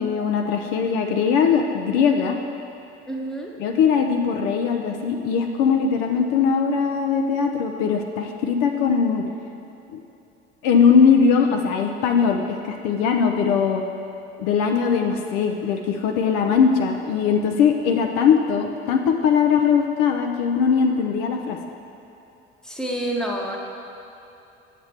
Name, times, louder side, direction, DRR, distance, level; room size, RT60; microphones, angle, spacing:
voice 1, 0.0-2.4 3.6-9.3 9.9-10.0 10.6-13.8 14.4-21.6, left 6 dB, 65° left, 4 dB, 0.5 m, -20 dB
voice 2, 3.1-3.5 22.6-23.6, right 1 dB, ahead, -1 dB, 0.9 m, -28 dB
7.5 x 5.8 x 3.3 m, 2.9 s
hypercardioid pair, 65°, 31 cm